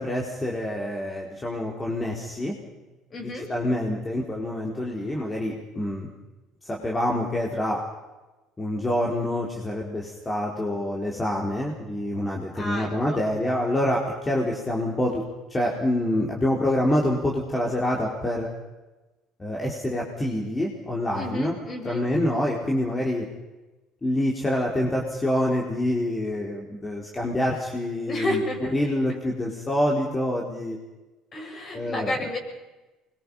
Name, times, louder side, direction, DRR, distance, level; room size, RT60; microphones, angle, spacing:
voice 1, 0.0-2.6 3.2-6.1 6.6-7.8 8.6-15.2 15.5-18.5 19.4-21.6 21.8-23.3 24.0-28.4 28.7-30.8 31.7-32.1, left 1 dB, 20° left, -2 dB, 4.3 m, -26 dB
voice 2, 3.1-3.5 12.5-13.2 21.1-22.1 28.0-28.8 31.3-32.4, left 1 dB, 40° left, 2 dB, 7.2 m, -31 dB
24.5 x 22.5 x 5.7 m, 1.1 s
supercardioid pair, 80°, 0 cm